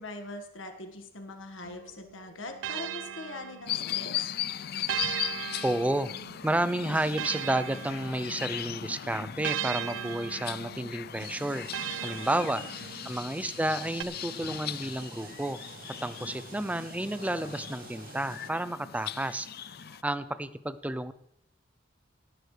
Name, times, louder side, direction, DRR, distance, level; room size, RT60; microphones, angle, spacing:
voice 1, 0.0-4.3 12.2-13.2, left 2 dB, 80° left, 5 dB, 1.8 m, -42 dB
sound 1, 1.6-4.1 4.9-8.7 9.4-13.2 14.0-14.1, right 10 dB, 75° right, 0.5 m, -38 dB
sound 2, 3.7-20.0, left 11 dB, 55° left, 0.4 m, -38 dB
voice 2, 5.6-6.1 6.4-11.7 12.0-12.6 13.0-15.6 16.0-19.5 19.8-21.1, right 1 dB, 10° right, 13 dB, 0.5 m, -31 dB
sound 3, 11.2-18.5, right 4 dB, 50° right, 0.9 m, -48 dB
18.0 x 11.0 x 3.4 m, 0.79 s
head